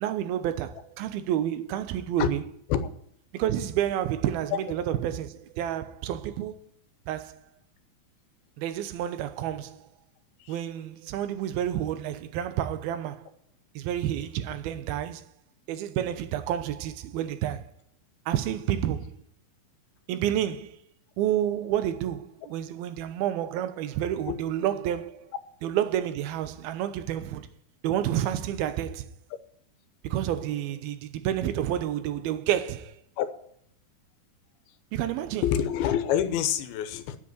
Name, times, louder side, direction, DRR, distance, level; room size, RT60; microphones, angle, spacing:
voice 1, 0.0-2.4 3.3-6.6 7.1-7.5 8.6-9.9 10.5-13.3 13.8-15.2 15.7-17.7 18.3-19.2 20.1-20.8 21.2-25.3 25.6-27.5 27.8-29.1 30.0-33.0 34.9-35.4, right 11 dB, 85° right, 2.7 m, -29 dB
voice 2, 35.4-37.2, left 10 dB, 85° left, 2.8 m, -26 dB
9.4 x 8.1 x 9.5 m
omnidirectional pair, 4.3 m